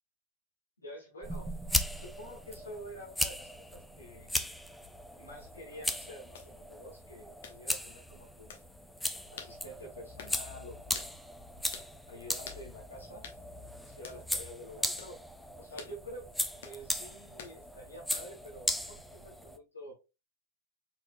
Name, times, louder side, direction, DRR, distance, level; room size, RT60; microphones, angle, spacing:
voice 1, 0.8-1.5 2.0-4.4 5.2-8.6 9.3-11.1 12.1-13.2 13.8-15.2 15.6-16.2 16.6-20.0, equal, 75° left, -3 dB, 1.6 m, -48 dB
sound 1, 1.2-19.6, left 1 dB, 5° left, 0.4 m, -38 dB
sound 2, 6.3-6.5 7.4-7.6 8.5-8.7 9.4-9.6 10.2-10.4 10.9-11.1 11.7-11.9 12.5-12.7 13.2-13.4 14.0-14.2 15.0-15.2 15.8-16.0 16.6-16.8 17.4-17.6 18.1-18.4, left 7 dB, 55° left, 1.0 m, -47 dB
4.7 x 4.2 x 2.2 m, 0.27 s
figure-of-eight pair, 90°, 0 cm